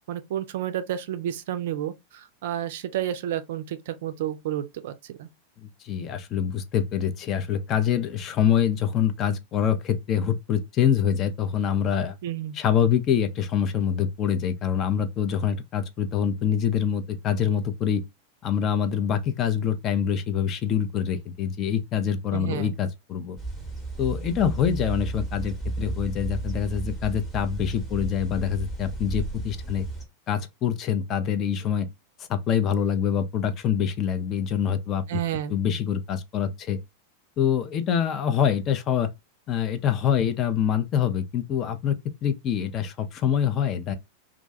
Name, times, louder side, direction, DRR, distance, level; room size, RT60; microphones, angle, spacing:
voice 1, 0.1-5.3 12.2-12.6 22.3-22.8 35.1-35.5, right 11 dB, 55° right, 0.3 m, -31 dB
voice 2, 5.6-12.2 12.5-18.0 18.4-23.4 24.0-29.9 30.3-31.9 32.3-35.2 35.5-36.8 37.4-39.1 39.5-42.0 42.2-44.0, left 8 dB, 30° left, 0.4 m, -25 dB
sound 1, 23.4-30.1, right 2 dB, 15° left, 0.9 m, -33 dB
2.4 x 2.2 x 2.6 m
figure-of-eight pair, 90°, 0 cm